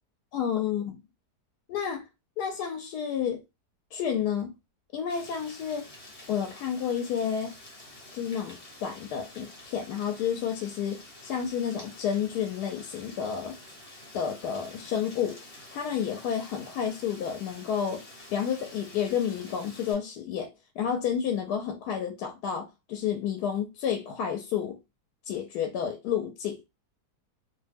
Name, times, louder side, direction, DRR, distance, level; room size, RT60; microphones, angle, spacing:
voice 1, 0.3-1.0 1.7-2.0 2.4-3.4 3.9-4.6 4.9-5.9 6.3-7.6 8.1-13.6 14.1-15.4 15.7-18.0 18.3-24.8 25.3-26.6, left 8 dB, 75° left, 1.1 m, -30 dB
Rain, 5.1-19.9, left 1 dB, 30° left, 0.7 m, -49 dB
2.8 x 2.1 x 3.3 m
omnidirectional pair, 1.8 m